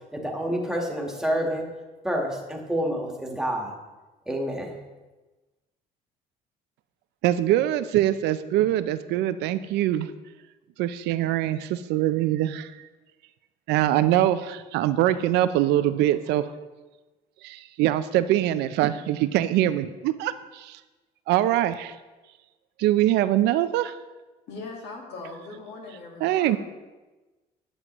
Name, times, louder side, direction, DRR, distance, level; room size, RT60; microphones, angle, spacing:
voice 1, 0.1-1.7 2.0-3.7 4.3-4.8, equal, 5° right, 0 dB, 1.4 m, -28 dB
voice 2, 7.2-10.1 10.8-12.7 13.7-16.5 17.4-20.8 21.3-21.9 22.8-24.0 26.2-26.6, right 13 dB, 85° right, 12 dB, 0.4 m, -23 dB
voice 3, 24.5-26.6, left 3 dB, 80° left, 0 dB, 1.8 m, -40 dB
9.6 x 7.3 x 3.0 m, 1.2 s
cardioid pair, 110°, 17 cm